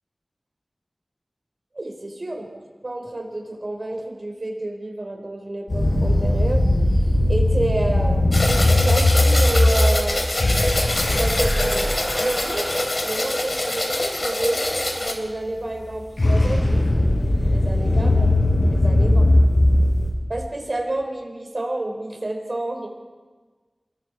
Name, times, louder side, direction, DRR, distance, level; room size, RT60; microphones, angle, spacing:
voice 1, 1.7-2.4 2.8-6.6 7.3-8.3 8.7-10.2 11.0-12.7 13.0-16.8 17.5-18.3 18.6-19.3 20.3-22.9, right 1 dB, 55° right, 2 dB, 4.8 m, -29 dB
sound 1, 5.7-12.8 15.7-20.1, left 1 dB, 70° left, 7.4 m, -19 dB
sound 2, 8.3-15.1, left 1 dB, 50° left, 3.2 m, -24 dB
27.5 x 23.0 x 5.0 m, 1.4 s
wide cardioid pair, 55°, 0 cm